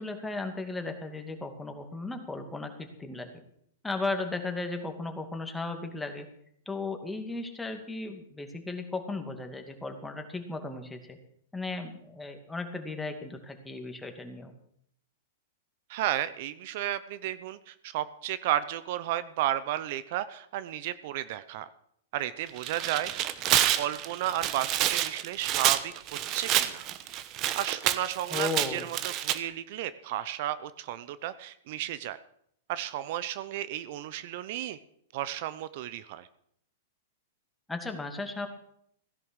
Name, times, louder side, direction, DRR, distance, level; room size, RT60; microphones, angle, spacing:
voice 1, 0.0-3.3 3.8-6.3 6.7-11.2 11.5-14.5 28.3-28.9 37.7-38.5, left 3 dB, 10° left, 5 dB, 2.4 m, -35 dB
voice 2, 15.9-21.7 22.1-23.1 23.7-25.9 26.3-26.9 27.5-32.2 32.7-34.8 35.1-36.3, right 13 dB, 55° right, 15 dB, 0.8 m, -33 dB
Tearing, 22.5-29.4, right 12 dB, 40° right, 1.1 m, -28 dB
16.5 x 11.0 x 6.4 m, 0.70 s
hypercardioid pair, 120°, 0 cm